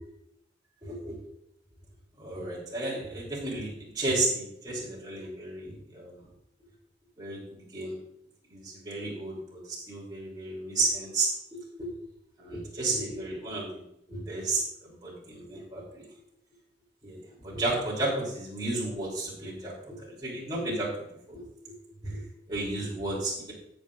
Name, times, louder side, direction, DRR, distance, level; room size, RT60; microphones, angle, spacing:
voice 1, 0.8-1.2 2.2-6.3 7.2-8.0 8.5-11.9 12.4-13.8 14.1-16.1 17.0-21.5 22.0-23.5, right 2 dB, 20° right, -6 dB, 3.1 m, -33 dB
18.0 x 6.4 x 2.5 m, 0.78 s
head